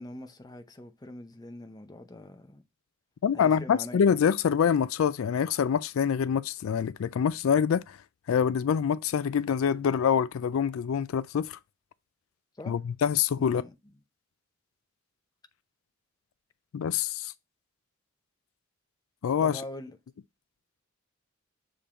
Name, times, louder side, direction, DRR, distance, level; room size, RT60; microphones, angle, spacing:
voice 1, 0.0-2.6 3.3-4.1 12.6-12.8 13.4-13.9 19.4-20.0, left 1 dB, 20° left, 0.7 m, -43 dB
voice 2, 3.2-8.0 8.3-11.6 12.7-13.6 16.7-17.3 19.2-19.6, left 7 dB, 80° left, 0.4 m, -25 dB
6.9 x 3.8 x 4.3 m
head